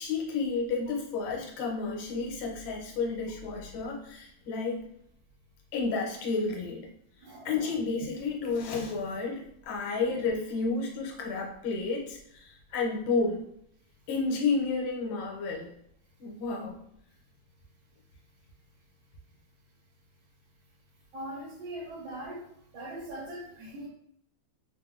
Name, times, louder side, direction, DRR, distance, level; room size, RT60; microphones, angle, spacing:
voice 1, 0.0-4.8 5.7-6.9 7.4-13.5 14.1-15.7 16.2-16.8, left 4 dB, 85° left, 0 dB, 1.5 m, -31 dB
voice 2, 7.2-7.7 21.1-22.5 22.7-23.9, right 1 dB, 85° right, -3 dB, 1.7 m, -41 dB
3.7 x 2.0 x 2.2 m, 0.72 s
omnidirectional pair, 2.2 m